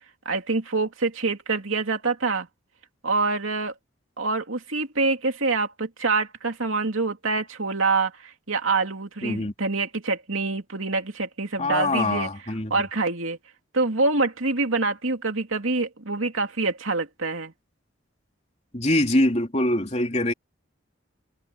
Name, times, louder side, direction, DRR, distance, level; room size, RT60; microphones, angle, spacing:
voice 1, 0.2-2.5 3.0-3.7 4.2-12.3 12.7-13.4 13.7-17.5, right 3 dB, 85° right, 2.8 m, -26 dB
voice 2, 9.2-9.5 11.6-12.7 18.7-20.3, left 1 dB, 35° left, 3.2 m, -23 dB
head